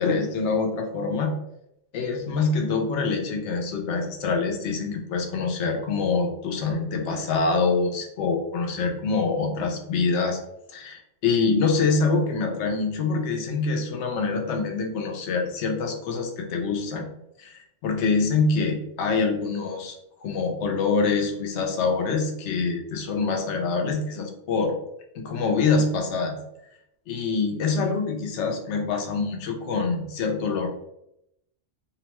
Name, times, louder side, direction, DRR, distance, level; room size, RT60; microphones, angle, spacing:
voice 1, 0.0-1.3 1.9-10.4 10.7-17.1 17.4-19.9 20.2-24.7 25.2-26.3 27.1-30.7, left 4 dB, 70° left, 3 dB, 0.9 m, -25 dB
2.7 x 2.1 x 2.9 m, 0.81 s
omnidirectional pair, 1.3 m